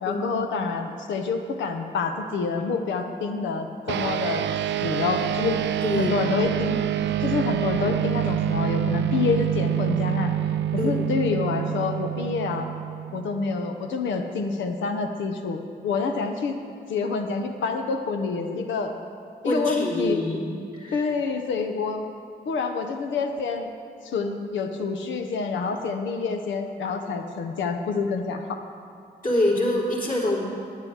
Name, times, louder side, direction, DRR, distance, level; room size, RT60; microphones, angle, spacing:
voice 1, 0.0-4.5 4.8-5.6 5.9-6.9 7.2-10.3 10.7-12.7 13.1-16.6 16.9-18.9 19.4-20.2 20.9-22.0 22.4-23.7 24.0-28.6, left 4 dB, 85° left, 5 dB, 1.0 m, -27 dB
sound 1, 3.9-13.6, right 11 dB, 70° right, 0.5 m, -26 dB
voice 2, 5.8-6.1 10.8-11.1 19.4-20.4 20.7-21.1 29.2-30.5, left 1 dB, 45° left, -5 dB, 3.4 m, -25 dB
9.7 x 9.5 x 6.5 m, 2.3 s
supercardioid pair, 45°, 19 cm